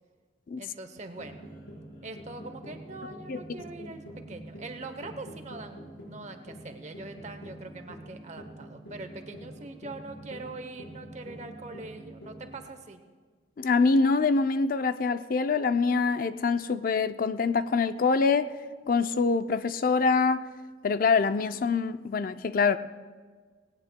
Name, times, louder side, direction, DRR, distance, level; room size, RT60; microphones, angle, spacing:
voice 1, 0.6-1.5 2.0-13.0, right 2 dB, 35° right, 7 dB, 0.8 m, -43 dB
sound 1, 1.1-12.6, right 1 dB, 80° left, 4.6 m, -46 dB
voice 2, 13.6-18.5 18.9-20.4 20.8-22.8, left 4 dB, 45° left, 12 dB, 0.4 m, -25 dB
18.5 x 17.5 x 2.2 m, 1.5 s
head